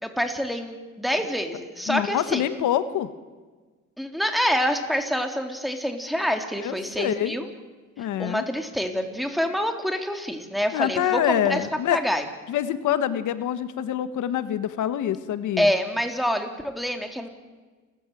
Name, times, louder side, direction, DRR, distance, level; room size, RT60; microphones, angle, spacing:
voice 1, 0.0-2.5 4.0-7.5 8.0-11.6 11.9-12.3 15.6-17.3, equal, ahead, 4 dB, 3.5 m, -26 dB
voice 2, 1.9-3.1 6.6-7.4 8.0-8.4 10.7-12.0 12.5-15.7, left 10 dB, 80° left, 12 dB, 1.4 m, -26 dB
29.5 x 14.5 x 9.1 m, 1.4 s
cardioid pair, 90°, 30 cm